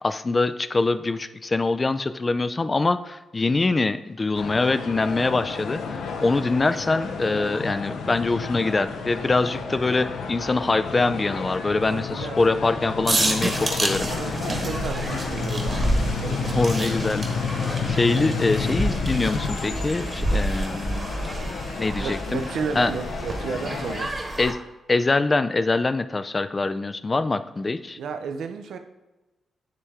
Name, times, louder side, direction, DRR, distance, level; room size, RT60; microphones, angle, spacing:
voice 1, 0.0-14.1 16.5-17.5 17.9-21.1 21.8-22.4 22.8-22.9 24.4-24.6 24.9-28.0, left 3 dB, 25° left, 12 dB, 0.3 m, -24 dB
sound 1, 4.3-24.1, left 5 dB, 85° left, 0.6 m, -31 dB
voice 2, 11.9-12.4 14.1-16.5 18.1-18.4 22.0-24.1 27.9-28.8, right 5 dB, 80° right, 7 dB, 0.5 m, -33 dB
sound 2, 13.0-24.5, right 1 dB, 25° right, 1.2 m, -29 dB
9.6 x 3.3 x 3.6 m, 1.1 s
cardioid pair, 105°, 0 cm